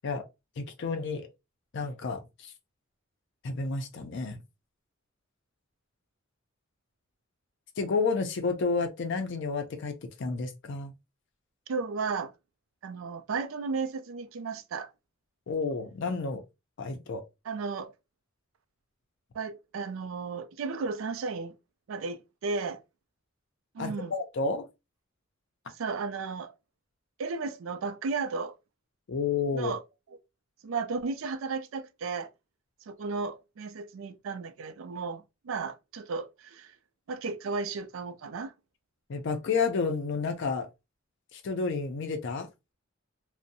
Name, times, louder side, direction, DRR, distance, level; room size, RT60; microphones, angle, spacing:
voice 1, 0.6-1.3 1.7-2.5 3.4-4.4 7.8-10.9 15.5-16.4 16.8-17.2 23.8-24.6 29.1-29.7 39.1-40.7 41.3-42.5, left 4 dB, 60° left, 0.4 m, -30 dB
voice 2, 11.7-12.3 12.8-14.9 17.5-17.9 19.3-21.5 21.9-22.8 23.7-24.1 25.7-26.5 27.2-28.6 29.5-29.8 30.6-32.3 32.9-36.8 37.1-38.5, right 4 dB, 75° right, 0.4 m, -34 dB
2.6 x 2.0 x 2.6 m
head